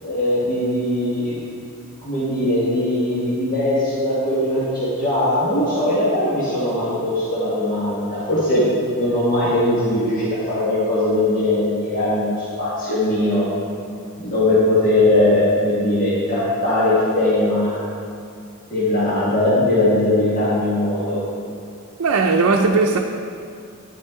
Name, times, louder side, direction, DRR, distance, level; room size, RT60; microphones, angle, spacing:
voice 1, 0.0-1.4 2.0-8.6 8.9-13.5 14.2-17.8 18.7-21.2, left 1 dB, 40° left, -10 dB, 1.7 m, -20 dB
voice 2, 22.0-23.0, right 4 dB, 75° right, 1 dB, 0.5 m, -17 dB
10.0 x 8.2 x 3.7 m, 2.4 s
head